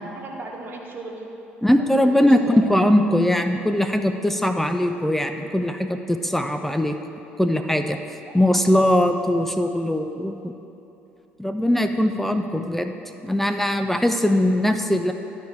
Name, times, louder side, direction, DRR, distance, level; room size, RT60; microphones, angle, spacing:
voice 1, 0.1-1.3 1.8-2.7 8.3-8.7, right 3 dB, 40° right, 0 dB, 1.2 m, -37 dB
voice 2, 1.6-7.0 7.4-8.0 8.3-10.5 11.4-12.9 13.2-15.1, left 1 dB, 5° left, 7 dB, 0.4 m, -20 dB
11.5 x 4.6 x 4.7 m, 3.0 s
figure-of-eight pair, 55°, 6 cm